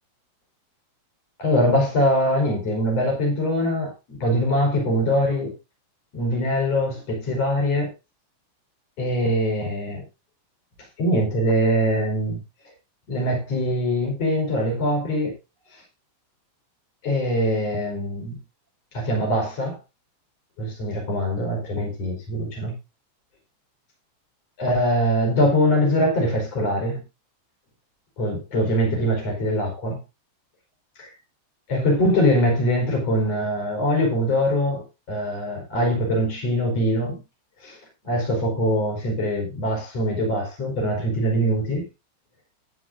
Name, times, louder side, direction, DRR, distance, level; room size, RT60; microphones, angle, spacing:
voice 1, 1.4-5.5 6.1-7.9 9.0-10.0 11.0-12.4 13.1-15.3 15.7-15.8 17.0-18.4 18.9-19.8 20.6-22.7 24.6-27.0 28.2-30.0 31.0-31.1 31.7-37.2 37.6-37.8 38.0-41.9, equal, 30° left, 5.3 m, -23 dB
18.0 x 8.1 x 2.6 m
omnidirectional pair, 5.7 m